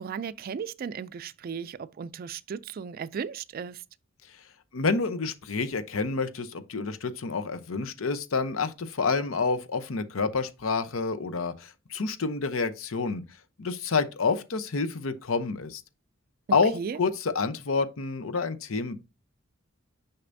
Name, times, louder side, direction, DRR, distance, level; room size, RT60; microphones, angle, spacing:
voice 1, 0.0-3.8 16.5-17.0, right 6 dB, 45° right, 0.3 m, -36 dB
voice 2, 4.7-13.2 13.6-15.8 16.5-19.0, left 4 dB, 90° left, 0.7 m, -28 dB
6.6 x 5.7 x 2.6 m
head